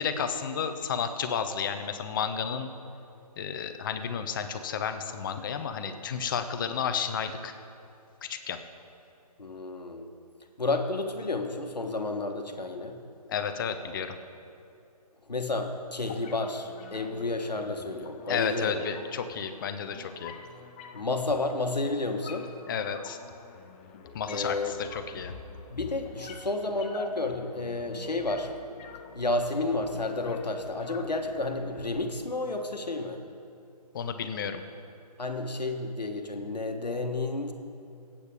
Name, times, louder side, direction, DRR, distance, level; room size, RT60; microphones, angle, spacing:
voice 1, 0.0-2.7 3.4-7.5 8.2-8.6 13.3-14.2 18.3-20.3 22.7-23.2 24.1-25.3 33.9-34.6, left 7 dB, 30° left, 8 dB, 0.8 m, -32 dB
voice 2, 9.4-10.1 10.6-13.0 15.3-18.8 20.9-22.5 24.2-24.7 25.7-28.5 29.1-33.2 35.2-37.5, left 2 dB, 85° left, 4 dB, 1.4 m, -31 dB
sound 1, 16.0-32.0, left 5 dB, 15° left, 0.4 m, -47 dB
24.5 x 8.6 x 3.6 m, 2.5 s
figure-of-eight pair, 145°, 21 cm